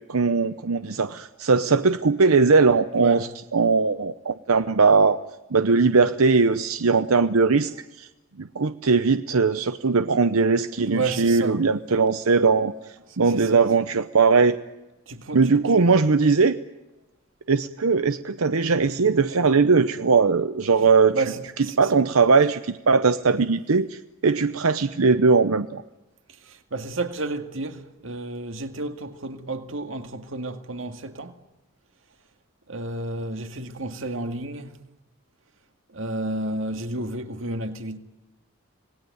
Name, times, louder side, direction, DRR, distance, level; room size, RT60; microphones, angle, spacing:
voice 1, 0.1-5.2 5.5-8.1 8.4-12.7 13.2-14.6 15.3-16.6 17.5-21.2 21.8-25.8, right 4 dB, 90° right, 0.8 m, -20 dB
voice 2, 3.0-3.3 10.9-11.6 13.3-13.6 15.1-15.9 21.1-21.9 26.4-31.4 32.7-34.8 35.9-38.0, right 2 dB, 70° right, 2.1 m, -31 dB
26.5 x 20.0 x 9.4 m
head